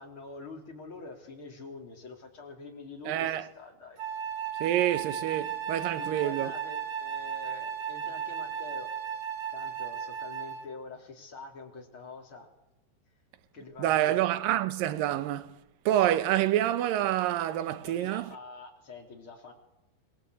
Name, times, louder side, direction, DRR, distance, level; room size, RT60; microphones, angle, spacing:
voice 1, 0.0-4.1 5.9-8.9 9.5-12.5 13.5-14.3 17.8-19.5, left 3 dB, 30° left, 3.9 m, -45 dB
voice 2, 3.1-3.5 4.6-6.5 13.8-18.3, right 12 dB, 70° right, 2.5 m, -27 dB
Wind instrument woodwind instrument, 4.0-10.8, right 8 dB, 50° right, 1.9 m, -35 dB
26.0 x 23.0 x 8.2 m
omnidirectional pair, 4.8 m